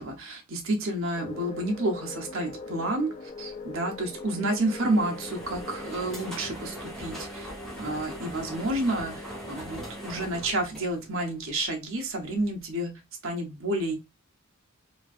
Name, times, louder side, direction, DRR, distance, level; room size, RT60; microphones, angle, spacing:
voice 1, 0.0-7.5 7.8-14.0, right 1 dB, 65° right, 2 dB, 0.9 m, -30 dB
sound 1, 1.1-6.4, left 3 dB, 30° left, 0.3 m, -41 dB
sound 2, 4.2-11.5, equal, 5° left, 1.0 m, -40 dB
3.0 x 2.4 x 2.5 m, 0.25 s
head